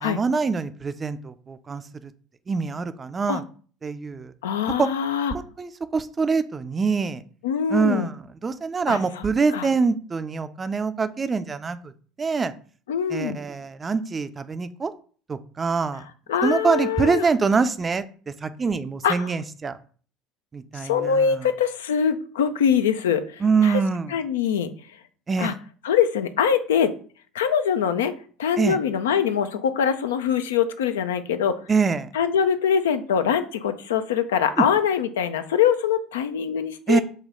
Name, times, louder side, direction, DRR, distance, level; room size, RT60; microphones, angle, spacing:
voice 1, 0.0-2.1 2.5-3.4 3.8-4.3 4.8-4.9 5.3-7.2 7.7-8.2 8.4-11.9 12.2-12.5 13.1-14.9 15.3-16.0 16.4-18.0 18.4-19.7 20.5-21.5 23.4-24.1 25.3-25.5 28.6-28.8 31.7-32.1 34.6-34.7 36.9-37.0, right 5 dB, 30° right, 12 dB, 0.3 m, -24 dB
voice 2, 4.4-5.4 7.4-8.1 8.9-9.3 9.5-9.7 12.9-13.4 16.3-17.3 19.0-19.3 20.7-23.8 24.1-24.7 25.4-25.5 25.8-26.9 27.3-31.6 32.1-37.0, left 7 dB, 80° left, 10 dB, 0.3 m, -23 dB
4.2 x 2.3 x 3.6 m, 0.42 s
hypercardioid pair, 70°, 0 cm